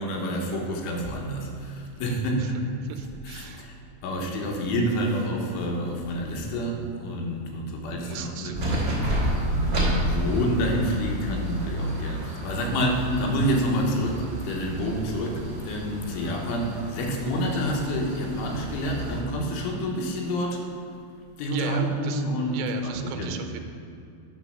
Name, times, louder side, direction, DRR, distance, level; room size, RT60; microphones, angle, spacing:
voice 1, 0.0-2.6 3.2-3.8 4.0-8.8 9.0-20.6 21.4-23.4, equal, 85° left, 0 dB, 3.5 m, -28 dB
voice 2, 2.0-2.5 2.8-3.7 4.2-4.5 8.0-8.6 21.5-22.2 22.5-23.6, right 8 dB, 85° right, 5 dB, 3.1 m, -38 dB
sound 1, 8.5-19.2, right 1 dB, 60° right, 0.8 m, -30 dB
10.5 x 4.0 x 6.3 m, 2.5 s
omnidirectional pair, 5.5 m